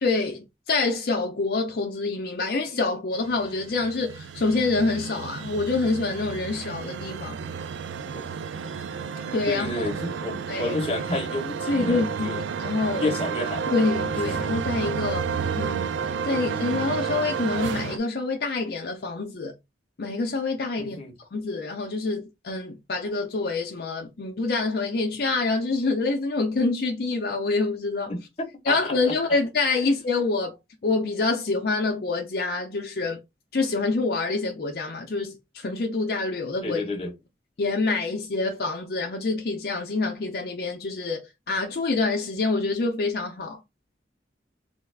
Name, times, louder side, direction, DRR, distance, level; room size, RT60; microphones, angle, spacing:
voice 1, 0.0-7.4 9.3-9.7 10.5-10.8 11.7-13.1 13.7-19.5 20.0-21.0 21.3-28.2 28.7-30.6 30.8-33.2 33.5-36.8 37.6-43.6, left 3 dB, 55° left, 0.5 m, -26 dB
sound 1, 3.3-18.0, right 6 dB, 75° right, 0.3 m, -31 dB
voice 2, 9.5-12.4 13.0-13.7 20.8-21.1 28.1-29.2 36.6-37.1, left 2 dB, 30° left, 0.8 m, -30 dB
3.3 x 2.3 x 3.2 m
head